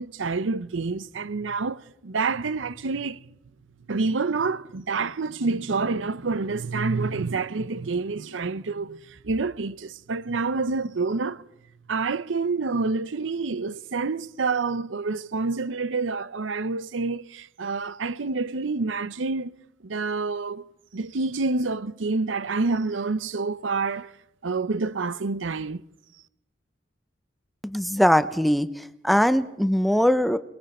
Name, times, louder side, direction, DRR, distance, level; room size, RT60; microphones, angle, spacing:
voice 1, 0.0-3.2 3.9-11.4 11.9-19.5 19.8-20.7 20.9-24.1 24.4-25.8, right 4 dB, 75° right, 0.7 m, -28 dB
voice 2, 27.6-28.7 29.0-30.4, equal, ahead, 0.6 m, -21 dB
28.5 x 21.5 x 4.3 m
head